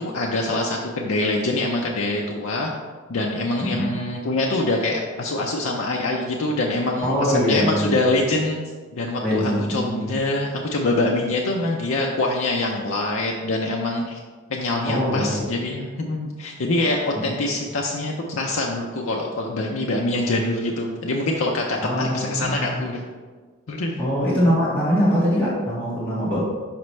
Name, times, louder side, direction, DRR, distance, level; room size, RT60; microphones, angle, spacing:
voice 1, 0.0-2.7 3.1-8.6 8.9-14.2 14.5-23.0 23.7-24.0, left 2 dB, 75° left, 0 dB, 0.5 m, -24 dB
voice 2, 7.0-8.0 9.2-10.1 14.9-15.4 17.1-17.3 21.8-22.8 24.0-26.4, equal, 5° left, -11 dB, 1.6 m, -22 dB
5.9 x 5.0 x 3.2 m, 1.4 s
head